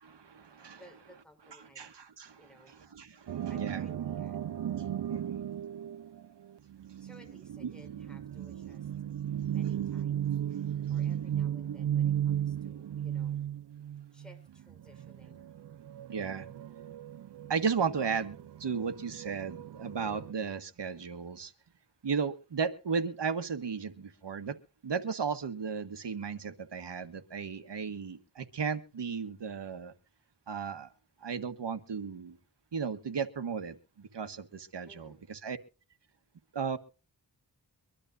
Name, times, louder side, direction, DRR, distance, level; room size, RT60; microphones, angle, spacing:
voice 1, 0.0-0.8 1.6-3.9 5.1-5.5 7.6-7.7 16.1-16.5 17.5-21.5 22.0-24.6 24.8-29.9 30.5-30.9 31.2-32.4 32.7-35.6 36.5-36.8, right 6 dB, 80° right, 1.6 m, -35 dB
voice 2, 0.7-2.0 2.4-2.8 3.5-4.4 7.0-9.0 9.3-13.4 14.1-15.5 34.9-35.2, equal, ahead, 6.8 m, -59 dB
sound 1, 3.3-20.3, right 10 dB, 65° right, 0.6 m, -36 dB
24.5 x 12.0 x 2.6 m
cardioid pair, 55°, 42 cm